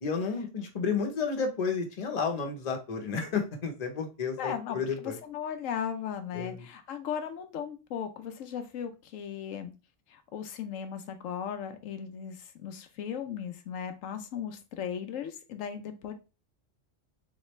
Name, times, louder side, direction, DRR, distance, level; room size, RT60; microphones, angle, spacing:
voice 1, 0.0-5.2 6.3-6.6, left 5 dB, 35° left, 3 dB, 0.8 m, -31 dB
voice 2, 4.4-9.7 10.1-16.1, left 8 dB, 85° left, 7 dB, 1.0 m, -37 dB
3.7 x 3.2 x 3.1 m, 0.30 s
omnidirectional pair, 1.3 m